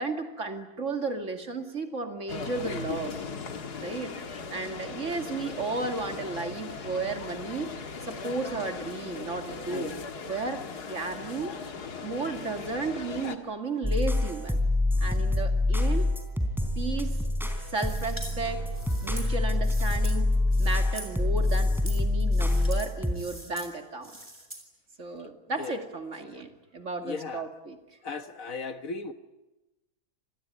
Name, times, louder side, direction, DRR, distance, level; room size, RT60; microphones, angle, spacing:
voice 1, 0.0-3.2 3.8-4.2 4.5-7.7 8.0-10.0 10.3-11.5 12.0-14.6 15.0-16.1 16.8-17.2 17.7-18.6 19.0-24.1 25.0-27.8, right 3 dB, 50° right, 2.6 m, -34 dB
sound 1, 2.3-13.4, left 5 dB, 80° left, 2.3 m, -38 dB
sound 2, 13.8-23.1, left 2 dB, ahead, 3.5 m, -26 dB
sound 3, 17.8-18.3 18.7-20.2 20.5-21.1 21.4-22.0 22.3-22.9 23.1-23.7 24.0-24.6, right 1 dB, 15° right, 4.2 m, -44 dB
voice 2, 27.0-27.5 28.0-29.1, left 4 dB, 60° left, 1.6 m, -36 dB
27.5 x 20.0 x 9.9 m
omnidirectional pair, 1.7 m